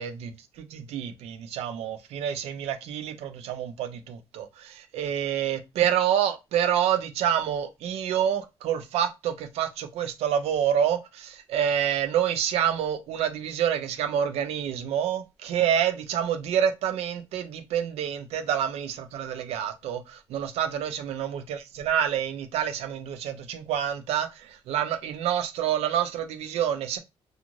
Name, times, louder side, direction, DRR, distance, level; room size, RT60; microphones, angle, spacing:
voice 1, 0.0-27.0, right 9 dB, 80° right, 0.5 m, -28 dB
2.5 x 2.4 x 3.0 m
cardioid pair, 150°, 10 cm